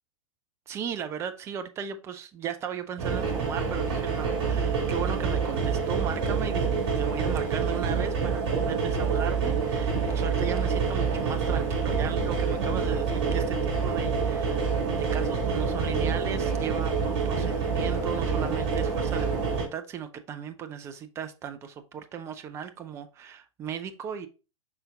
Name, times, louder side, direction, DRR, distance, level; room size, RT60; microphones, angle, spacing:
voice 1, 0.7-24.3, right 8 dB, 15° right, 0.4 m, -36 dB
sound 1, 3.0-19.6, right 5 dB, 55° right, 1.8 m, -27 dB
5.5 x 3.9 x 2.3 m
figure-of-eight pair, 100°, 16 cm